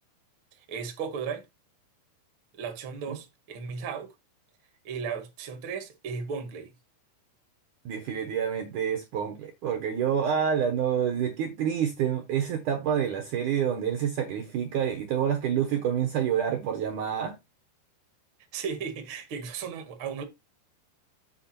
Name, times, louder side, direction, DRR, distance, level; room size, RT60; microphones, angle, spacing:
voice 1, 0.5-1.5 2.5-4.1 4.8-6.7 18.5-20.2, right 6 dB, 45° right, 1.9 m, -35 dB
voice 2, 7.9-17.4, right 8 dB, 65° right, 2.3 m, -28 dB
8.6 x 4.8 x 4.3 m
omnidirectional pair, 4.7 m